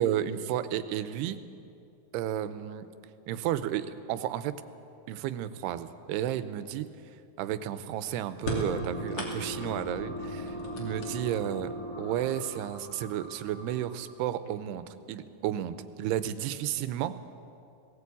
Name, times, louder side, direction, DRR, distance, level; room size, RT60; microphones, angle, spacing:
voice 1, 0.0-1.4 2.1-2.9 3.3-4.5 5.1-6.9 7.4-11.7 12.0-17.1, right 11 dB, 90° right, 12 dB, 2.8 m, -32 dB
sound 1, 8.4-9.8 10.4-11.6 12.6-12.7 13.7-13.8 14.2-14.7, left 1 dB, 40° left, 3.2 m, -37 dB
sound 2, 8.5-14.2, equal, 75° left, 6.4 m, -39 dB
18.0 x 17.0 x 8.4 m, 2.6 s
omnidirectional pair, 4.6 m